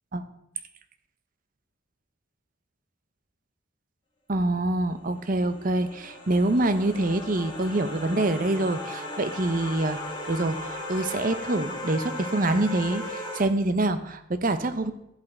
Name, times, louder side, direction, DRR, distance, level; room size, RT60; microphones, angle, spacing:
voice 1, 4.3-14.9, right 2 dB, 40° right, 10 dB, 0.7 m, -26 dB
sound 1, 5.0-13.4, left 1 dB, 20° left, 1.9 m, -37 dB
12.5 x 7.7 x 4.4 m, 0.84 s
head